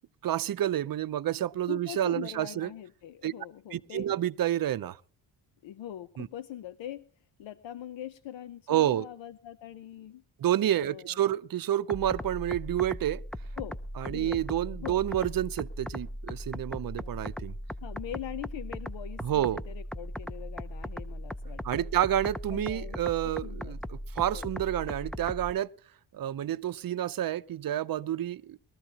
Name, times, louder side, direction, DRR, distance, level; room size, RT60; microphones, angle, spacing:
voice 1, 0.2-2.7 3.2-3.3 3.7-5.0 6.2-6.3 8.7-9.1 10.4-13.2 14.0-17.5 19.2-19.6 21.6-25.7 26.1-28.6, right 12 dB, 50° right, 0.7 m, -29 dB
voice 2, 1.7-4.1 5.6-7.0 7.4-10.2 10.8-11.2 13.6-13.8 14.0-14.4 14.8-15.3 16.9-17.2 17.8-21.9 22.5-23.0 23.4-23.7 24.3-24.5, left 12 dB, 70° left, 0.8 m, -42 dB
sound 1, 11.9-25.5, equal, ahead, 0.5 m, -38 dB
21.5 x 13.5 x 2.9 m
cardioid pair, 70°, 46 cm